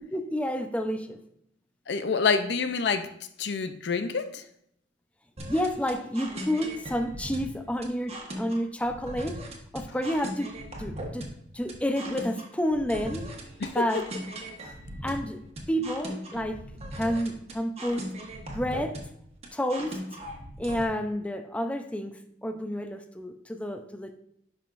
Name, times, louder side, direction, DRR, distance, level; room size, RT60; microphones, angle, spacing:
voice 1, 0.1-1.2 5.5-9.4 9.7-10.5 10.8-11.3 11.5-13.3 13.7-14.0 15.0-15.4 15.7-16.6 17.0-18.1 18.5-18.9 19.5-20.0 20.6-22.1 22.4-24.1, equal, 5° left, 0.6 m, -29 dB
voice 2, 1.9-3.1 3.4-4.4 13.6-13.8 16.3-16.5, left 5 dB, 65° left, 0.6 m, -27 dB
sound 1, 5.4-20.8, right 1 dB, 35° right, 1.3 m, -39 dB
10.5 x 5.6 x 2.5 m
head